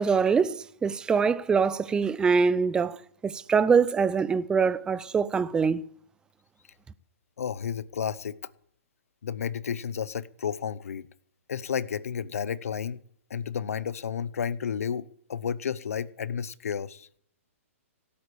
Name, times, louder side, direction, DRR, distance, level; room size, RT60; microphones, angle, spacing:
voice 1, 0.0-3.0 3.2-5.8, right 5 dB, 10° right, 0.5 m, -24 dB
voice 2, 7.4-8.4 9.2-11.1 11.5-13.0 13.3-17.1, left 7 dB, 80° left, 0.9 m, -32 dB
17.0 x 8.7 x 8.5 m
hypercardioid pair, 140°, 8 cm